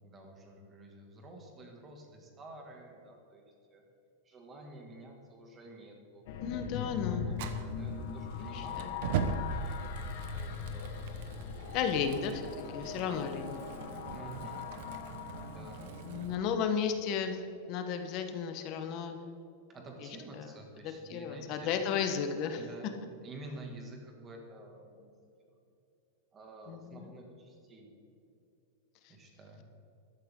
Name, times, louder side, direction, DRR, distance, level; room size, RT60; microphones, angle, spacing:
voice 1, 0.0-3.4 3.7-3.8 4.2-6.2 6.8-10.9 11.8-12.2 12.8-13.5 14.1-14.6 15.3-15.9 19.7-21.7 22.6-22.9 23.2-25.1 26.3-27.9 29.1-29.7, right 2 dB, 20° right, 1 dB, 2.1 m, -50 dB
sound 1, 6.3-16.6, left 6 dB, 55° left, 1.2 m, -40 dB
voice 2, 6.4-7.3 8.4-8.9 11.7-13.6 16.0-17.4 17.7-19.2 20.4-20.5 21.1-22.6 26.7-27.1, left 7 dB, 40° left, 6 dB, 1.0 m, -34 dB
Fire, 7.3-16.3, right 5 dB, 55° right, 1.1 m, -40 dB
14.0 x 12.5 x 3.7 m, 2.6 s
supercardioid pair, 165°, 0 cm